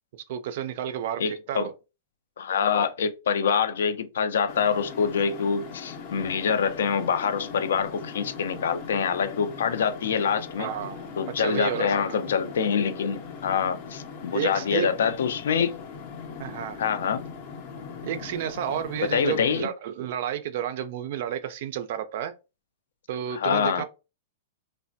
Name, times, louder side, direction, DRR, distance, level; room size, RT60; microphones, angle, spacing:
voice 1, 0.3-1.7 10.6-11.1 11.4-12.2 14.3-14.9 15.5-15.6 16.4-16.8 18.0-22.3 23.1-23.8, right 10 dB, 45° right, 0.3 m, -31 dB
voice 2, 1.2-1.7 2.4-10.7 11.2-15.7 16.8-17.3 19.1-19.7 23.3-23.8, left 6 dB, 85° left, 0.4 m, -25 dB
sound 1, 4.5-19.6, left 5 dB, 30° left, 0.5 m, -40 dB
3.2 x 2.1 x 2.6 m
supercardioid pair, 180°, 0 cm